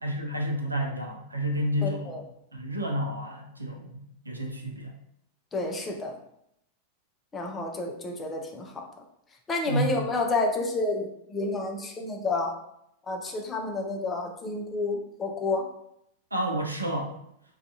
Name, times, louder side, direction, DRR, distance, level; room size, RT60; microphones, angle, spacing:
voice 1, 0.0-2.2 2.5-4.9 9.7-9.9 16.3-17.1, equal, 80° right, 2 dB, 0.4 m, -30 dB
voice 2, 1.8-2.2 5.5-6.1 7.3-8.8 9.5-12.5 13.1-15.6, left 2 dB, 20° left, 1 dB, 0.4 m, -30 dB
2.4 x 2.3 x 2.6 m, 0.76 s
figure-of-eight pair, 90°, 0 cm